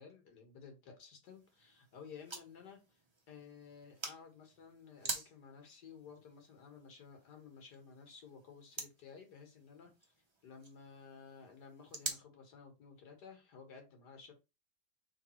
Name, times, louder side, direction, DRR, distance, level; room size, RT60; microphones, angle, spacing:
voice 1, 0.0-3.0 3.3-10.1 10.4-14.3, left 6 dB, 80° left, 1.9 m, -55 dB
sound 1, 1.2-12.2, right 2 dB, 25° right, 0.6 m, -48 dB
3.6 x 3.2 x 4.3 m
omnidirectional pair, 1.7 m